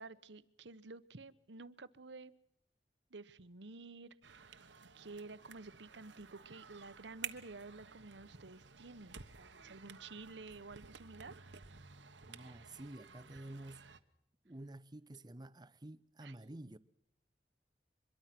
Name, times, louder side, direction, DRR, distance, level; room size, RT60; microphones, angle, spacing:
voice 1, 0.0-2.3 3.1-4.1 4.4-4.7 4.9-9.2 9.6-11.3 16.2-16.4 16.6-16.8, right 3 dB, 70° right, 1.1 m, -51 dB
sound 1, 4.2-14.0, right 7 dB, 90° right, 1.3 m, -53 dB
voice 2, 12.3-13.9 14.4-16.8, right 1 dB, 25° right, 0.8 m, -50 dB
24.5 x 22.0 x 6.0 m
head